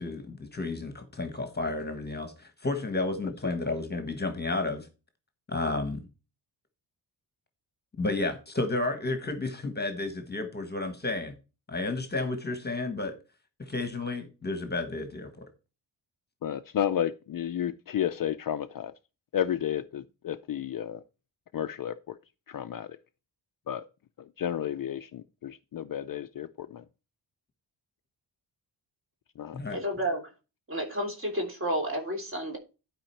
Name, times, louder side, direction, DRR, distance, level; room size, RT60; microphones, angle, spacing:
voice 1, 0.0-4.9 5.5-6.0 8.0-11.3 11.7-13.2 13.6-15.5 29.5-29.8, left 2 dB, 20° left, 1.4 m, -32 dB
voice 2, 16.4-18.9 19.3-21.0 21.5-22.2 22.5-23.0 23.7-23.8 24.2-26.8 29.4-29.6, left 10 dB, 50° left, 0.5 m, -32 dB
voice 3, 29.7-30.2 30.7-32.6, right 1 dB, 30° right, 3.4 m, -31 dB
12.0 x 5.0 x 4.5 m
wide cardioid pair, 175°, 45 cm